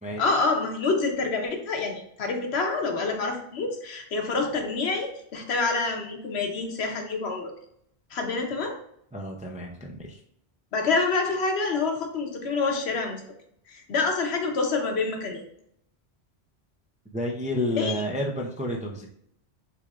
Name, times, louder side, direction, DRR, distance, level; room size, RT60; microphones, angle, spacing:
voice 1, 0.2-7.5 8.1-8.7 10.7-13.2 13.7-15.4 17.7-17.9, left 3 dB, 70° left, 3 dB, 1.1 m, -27 dB
voice 2, 9.1-10.2 17.1-19.1, left 1 dB, 10° right, -1 dB, 0.4 m, -30 dB
6.8 x 3.2 x 2.4 m, 0.69 s
omnidirectional pair, 1.1 m